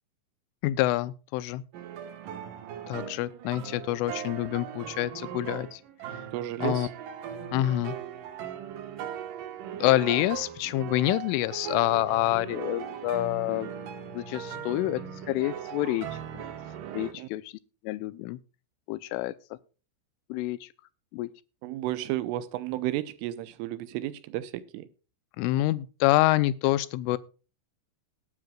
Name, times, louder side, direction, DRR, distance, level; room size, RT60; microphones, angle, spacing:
voice 1, 0.6-1.6 2.9-5.8 6.6-6.9 7.5-8.0 9.8-13.7 14.1-15.0 15.3-16.1 16.3-16.4 16.9-17.5 17.8-18.4 18.9-19.3 20.3-20.7 21.1-21.3 25.4-27.2, left 16 dB, 85° left, 3.2 m, -27 dB
sound 1, 1.7-17.1, right 8 dB, 70° right, 2.1 m, -39 dB
voice 2, 6.3-6.9 17.2-17.3 21.6-24.9, right 14 dB, 85° right, 3.2 m, -32 dB
19.5 x 10.5 x 2.4 m
omnidirectional pair, 5.7 m